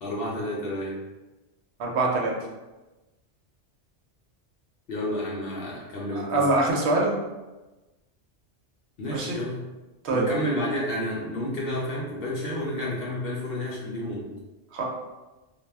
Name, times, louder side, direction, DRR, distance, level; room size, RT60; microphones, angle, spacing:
voice 1, 0.0-1.0 4.9-6.5 9.0-9.6 10.1-14.3, left 1 dB, 60° left, -4 dB, 0.7 m, -30 dB
voice 2, 1.8-2.3 6.1-7.2 9.1-9.4 10.0-10.3 14.7-14.8, right 2 dB, 70° right, -1 dB, 0.8 m, -24 dB
2.2 x 2.0 x 3.3 m, 1.1 s
omnidirectional pair, 1.2 m